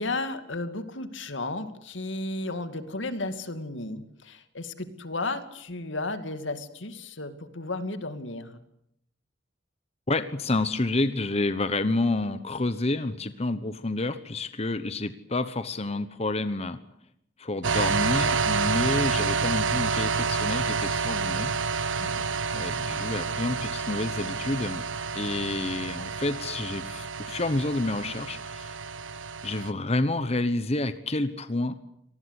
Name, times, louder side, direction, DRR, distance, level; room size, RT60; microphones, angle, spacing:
voice 1, 0.0-8.6 22.0-22.2, left 2 dB, 85° left, 10 dB, 2.4 m, -34 dB
voice 2, 10.1-16.8 17.4-21.5 21.8-22.0 22.5-24.8 25.1-28.8 29.4-31.7, left 2 dB, 35° left, 11 dB, 1.1 m, -29 dB
sound 1, 17.6-29.7, right 5 dB, 90° right, 1.1 m, -29 dB
26.0 x 19.0 x 8.3 m, 0.75 s
head